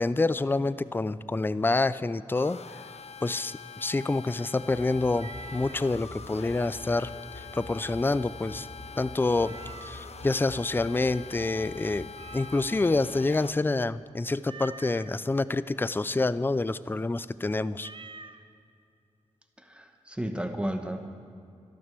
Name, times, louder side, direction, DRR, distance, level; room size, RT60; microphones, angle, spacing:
voice 1, 0.0-2.6 3.2-7.1 7.4-8.7 9.0-9.6 9.8-12.1 12.3-17.9, left 3 dB, 15° left, 16 dB, 0.4 m, -27 dB
sound 1, 2.4-13.5, left 6 dB, 60° left, 0.6 m, -45 dB
sound 2, 4.6-13.1, left 1 dB, 80° left, 2.3 m, -47 dB
Meow, 5.1-5.9 9.3-10.1 12.1-12.9 14.4-15.2 17.8-18.4, right 4 dB, 45° right, 0.7 m, -46 dB
voice 2, 19.6-21.1, right 1 dB, 10° right, 5 dB, 1.2 m, -33 dB
12.5 x 12.5 x 6.7 m, 2.4 s
cardioid pair, 60°, 12 cm